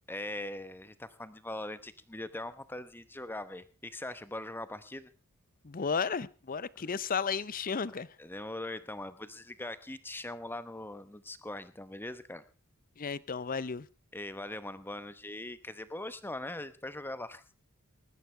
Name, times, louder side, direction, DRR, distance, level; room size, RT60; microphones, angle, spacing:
voice 1, 0.1-5.1 6.8-7.0 8.2-12.5 14.1-17.4, left 1 dB, 10° left, 0.9 m, -41 dB
voice 2, 5.6-8.1 13.0-13.9, left 5 dB, 40° left, 0.6 m, -33 dB
20.0 x 14.0 x 3.3 m
head